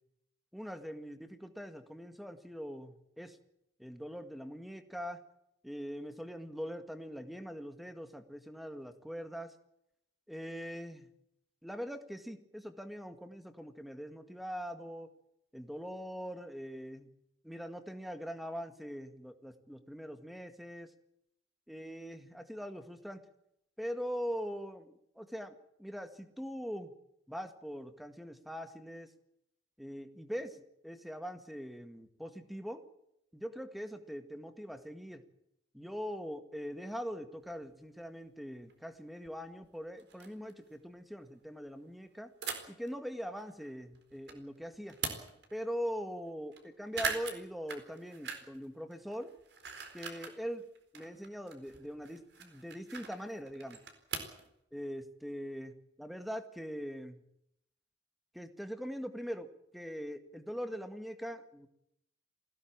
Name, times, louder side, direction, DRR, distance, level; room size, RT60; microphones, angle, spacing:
voice 1, 0.5-3.4 3.8-5.2 5.6-9.5 10.3-11.1 11.6-15.1 15.5-17.1 17.4-20.9 21.7-23.2 23.8-26.9 27.3-29.1 29.8-32.8 33.3-35.2 35.7-42.3 42.7-45.0 45.5-49.3 49.9-50.7 50.9-53.8 54.7-55.7 56.0-57.2 58.3-61.7, equal, ahead, 8 dB, 1.9 m, -42 dB
sound 1, 37.5-37.6 38.7-38.8 39.2-39.3 39.6-39.7 40.0-40.5 42.4-42.9 43.4-44.4 44.7-45.6 46.0-46.1 46.3-46.6 46.9-48.7 48.9-50.4 50.7-54.5, right 5 dB, 65° right, 4.2 m, -41 dB
21.0 x 16.5 x 8.8 m, 0.77 s
head